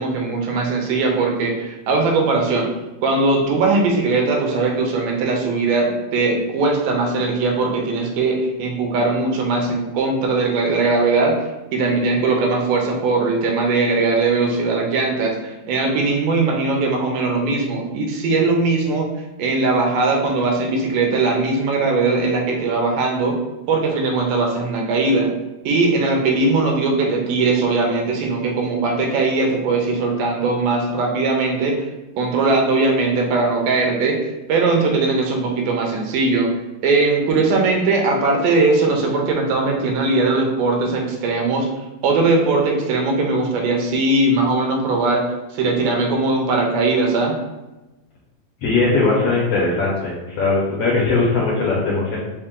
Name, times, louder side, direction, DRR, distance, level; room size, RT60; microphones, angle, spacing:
voice 1, 0.0-2.7 3.0-11.3 11.7-19.1 19.4-23.3 23.7-25.3 25.7-31.8 32.2-34.2 34.5-36.5 36.8-41.7 42.0-45.2 45.5-47.4, right 3 dB, 85° right, 1 dB, 2.4 m, -19 dB
voice 2, 48.6-52.2, left 3 dB, 70° left, -6 dB, 1.5 m, -19 dB
5.4 x 2.4 x 3.7 m, 1.0 s
omnidirectional pair, 3.7 m